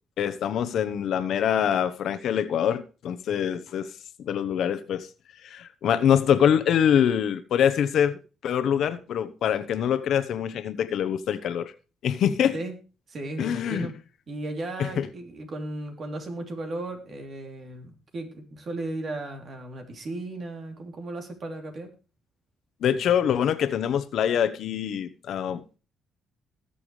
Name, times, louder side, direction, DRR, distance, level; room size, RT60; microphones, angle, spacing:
voice 1, 0.2-3.9 4.2-5.1 5.4-11.7 12.0-12.6 13.4-13.9 14.8-15.1 22.8-25.8, left 9 dB, 70° left, 1.0 m, -24 dB
voice 2, 13.1-13.9 14.3-21.9, right 2 dB, 50° right, 3.3 m, -35 dB
19.5 x 7.0 x 3.2 m
cardioid pair, 90°, 0 cm